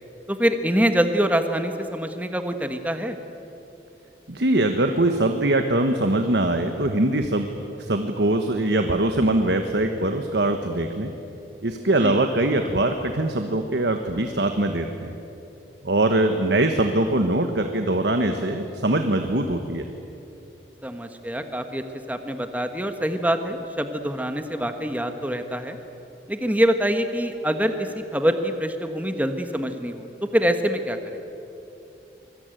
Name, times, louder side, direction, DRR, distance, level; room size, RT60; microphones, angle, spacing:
voice 1, 0.3-3.2 12.0-12.2 20.8-25.8 26.3-30.1 30.3-31.2, equal, 10° right, 7 dB, 1.3 m, -25 dB
voice 2, 4.3-7.5 7.8-11.1 11.6-15.1 15.8-19.8, right 1 dB, 70° right, 6 dB, 1.3 m, -22 dB
25.0 x 21.0 x 9.1 m, 2.9 s
head